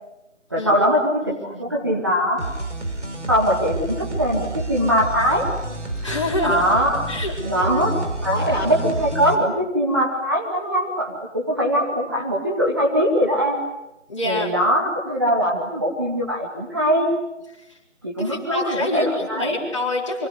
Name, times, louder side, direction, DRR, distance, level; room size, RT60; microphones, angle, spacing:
voice 1, 0.5-2.4 3.3-5.4 6.4-7.1 7.4-7.9 8.2-13.6 14.2-17.1 18.0-19.6, equal, 20° right, -3 dB, 2.2 m, -21 dB
voice 2, 1.2-1.8 6.0-6.6 7.1-7.3 14.1-14.5 17.7-17.8 18.2-20.3, left 2 dB, 25° left, -2 dB, 4.4 m, -27 dB
sound 1, 2.4-9.3, right 2 dB, 70° right, 5.2 m, -29 dB
28.5 x 25.5 x 8.2 m, 0.94 s
figure-of-eight pair, 175°, 37 cm